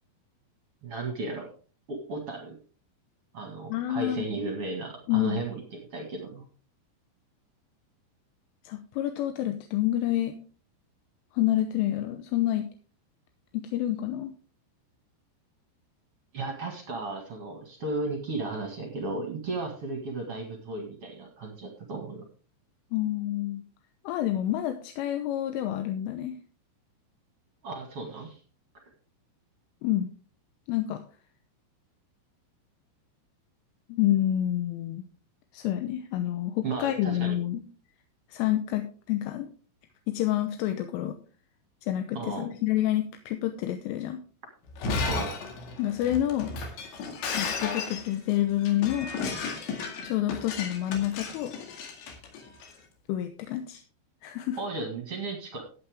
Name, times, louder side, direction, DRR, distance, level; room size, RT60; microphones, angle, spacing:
voice 1, 0.8-1.5 1.9-2.5 3.3-6.4 16.3-22.2 27.6-28.4 36.6-37.4 42.1-42.5 45.1-45.3 54.6-55.6, right 3 dB, 55° right, 2 dB, 1.6 m, -35 dB
voice 2, 3.7-4.3 5.1-5.4 8.6-10.3 11.3-12.7 13.5-14.3 22.9-23.6 24.0-26.4 29.8-30.1 30.7-31.0 33.9-35.0 35.5-37.6 38.3-39.5 40.1-41.2 41.8-44.2 45.8-46.6 47.3-49.1 50.0-51.6 53.1-53.8 54.2-54.6, left 13 dB, 85° left, 7 dB, 3.3 m, -28 dB
Shatter, 44.7-52.7, left 4 dB, 70° left, 4.2 m, -34 dB
14.0 x 9.0 x 3.6 m, 0.39 s
omnidirectional pair, 5.8 m